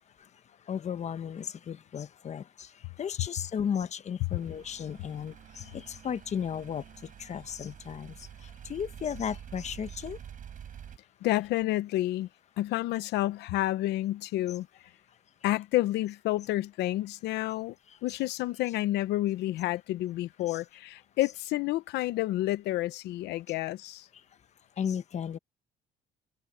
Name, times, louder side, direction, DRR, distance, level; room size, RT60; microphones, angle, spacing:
voice 1, 0.7-10.2 20.5-20.6 24.8-25.4, left 8 dB, 45° left, 1.2 m, -35 dB
sound 1, 4.3-11.0, right 9 dB, 50° right, 6.4 m, -47 dB
voice 2, 11.2-12.3 12.6-14.7 15.4-17.7 18.0-24.1, left 16 dB, 80° left, 0.9 m, -29 dB
cardioid pair, 110°, 17 cm